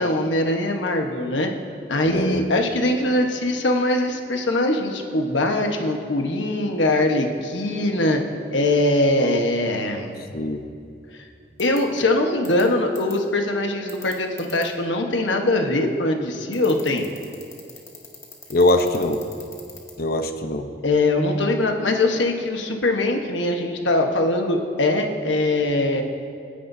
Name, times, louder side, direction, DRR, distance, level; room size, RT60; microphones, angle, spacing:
voice 1, 0.0-1.5 1.9-8.2 8.5-10.2 11.1-11.2 11.6-17.1 20.8-26.0, left 2 dB, 90° left, 3 dB, 1.2 m, -22 dB
voice 2, 2.1-2.4 10.3-10.6 18.5-19.2 20.0-20.7, left 1 dB, 55° left, 6 dB, 0.9 m, -21 dB
sound 1, 11.6-11.8 12.4-12.6 12.9-13.1 13.9-14.6 16.5-19.9, left 5 dB, 15° left, 1.8 m, -41 dB
27.5 x 10.0 x 2.7 m, 2.4 s
head